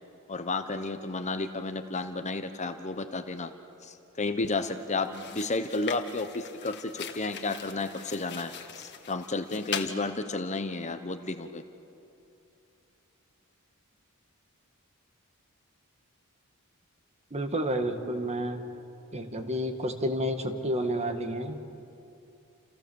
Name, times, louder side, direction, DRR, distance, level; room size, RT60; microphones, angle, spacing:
voice 1, 0.3-3.5 3.8-11.6, left 3 dB, 30° left, 9 dB, 1.1 m, -32 dB
sound 1, 4.4-4.6 5.0-10.0, left 7 dB, 50° left, 1.9 m, -40 dB
voice 2, 17.3-18.6 19.1-21.8, equal, 30° right, 6 dB, 1.9 m, -30 dB
29.5 x 28.5 x 7.2 m, 2.7 s
head